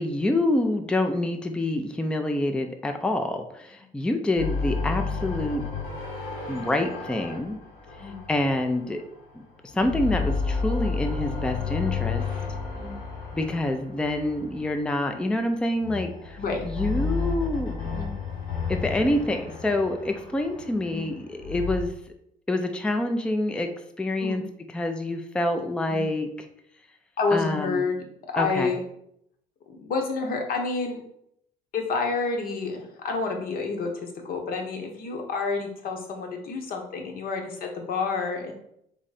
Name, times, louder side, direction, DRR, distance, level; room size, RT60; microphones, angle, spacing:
voice 1, 0.0-5.7 6.5-7.6 8.0-9.0 9.7-12.2 13.3-17.8 18.7-21.9 22.5-23.7 24.0-24.4 24.7-26.3 27.3-27.9 28.4-28.7, left 1 dB, 5° left, 6 dB, 0.4 m, -27 dB
sound 1, 4.4-9.3 9.7-15.0 15.8-21.8, left 5 dB, 85° left, 1.3 m, -32 dB
voice 2, 27.2-28.0 28.3-28.8 29.7-31.0 31.7-33.9 34.2-38.5, left 4 dB, 60° left, 3 dB, 1.0 m, -29 dB
3.6 x 3.2 x 4.1 m, 0.74 s
cardioid pair, 110°, 17 cm